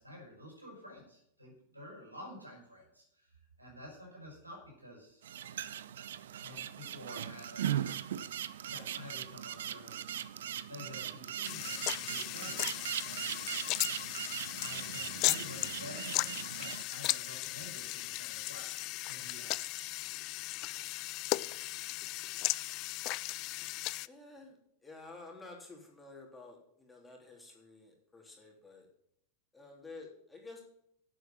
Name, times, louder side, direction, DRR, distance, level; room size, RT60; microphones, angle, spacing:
voice 1, 0.0-5.2 6.3-7.7 8.7-9.9 10.7-13.4 14.5-18.7 19.1-19.6, left 1 dB, 85° right, 0 dB, 5.6 m, -50 dB
sound 1, 5.2-16.8, right 10 dB, 60° right, 0.5 m, -39 dB
sound 2, 11.4-24.1, left 20 dB, 40° left, 0.3 m, -36 dB
voice 2, 24.0-28.9 29.5-30.6, left 3 dB, 10° left, 0 dB, 3.2 m, -51 dB
11.0 x 8.0 x 7.6 m, 0.72 s
figure-of-eight pair, 90°, 0 cm